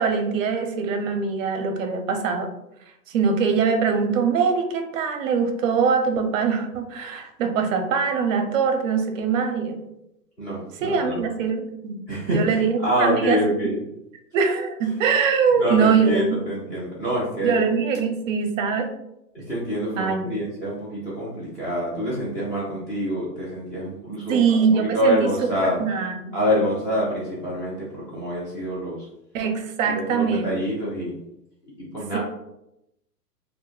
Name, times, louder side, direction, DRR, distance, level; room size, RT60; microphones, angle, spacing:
voice 1, 0.0-2.5 3.1-9.8 10.8-12.0 12.3-13.4 14.3-16.4 17.4-18.9 20.0-20.3 24.3-26.3 29.3-30.7, right 5 dB, 55° right, 5 dB, 0.6 m, -23 dB
voice 2, 10.4-11.3 12.1-13.8 15.5-17.6 19.3-25.8 26.3-29.1 29.9-31.1 31.8-32.2, equal, 10° left, -9 dB, 0.4 m, -26 dB
2.1 x 2.1 x 3.1 m, 0.85 s
hypercardioid pair, 115°, 49 cm